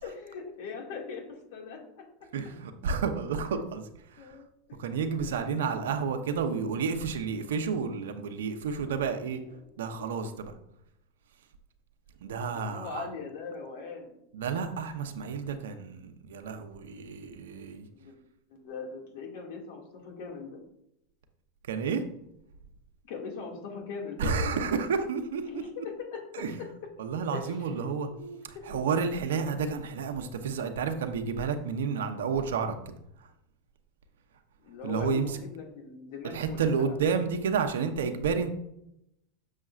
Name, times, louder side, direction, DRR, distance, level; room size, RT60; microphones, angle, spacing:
voice 1, 0.0-2.0 3.5-3.6 4.2-4.5 5.1-5.3 5.6-5.8 9.4-9.6 10.0-10.1 12.5-14.2 17.9-18.1 18.5-20.6 23.1-24.6 25.5-26.4 27.3-27.6 28.1-28.6 34.6-37.0, left 5 dB, 70° left, 0 dB, 2.1 m, -40 dB
voice 2, 2.3-3.8 4.1-4.4 4.8-9.4 9.8-10.5 12.2-13.1 14.3-17.9 21.7-22.0 24.2-25.6 26.3-26.6 27.0-28.1 28.5-32.8 34.8-35.4 36.2-38.5, right 5 dB, 80° right, 6 dB, 0.8 m, -30 dB
7.4 x 6.5 x 2.5 m, 0.78 s
hypercardioid pair, 105°, 0 cm